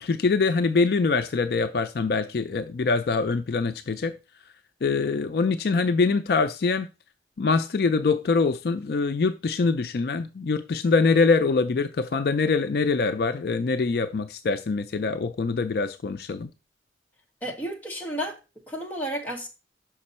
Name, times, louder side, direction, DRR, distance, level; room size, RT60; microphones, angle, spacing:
voice 1, 0.0-4.1 4.8-6.9 7.4-16.5, left 4 dB, 55° left, 0.4 m, -24 dB
voice 2, 17.4-18.4 18.7-19.5, equal, 10° left, 1.2 m, -32 dB
5.9 x 5.3 x 4.2 m
head